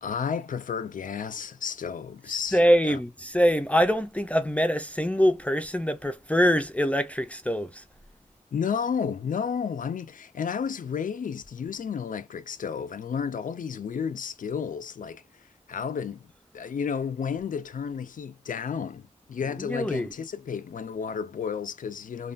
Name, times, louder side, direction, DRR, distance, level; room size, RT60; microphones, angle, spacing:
voice 1, 0.0-3.0 8.5-22.3, left 6 dB, 85° left, 0.4 m, -32 dB
voice 2, 2.5-7.8 19.7-20.1, equal, 10° left, 0.4 m, -24 dB
3.2 x 2.2 x 2.4 m
wide cardioid pair, 80°, 13 cm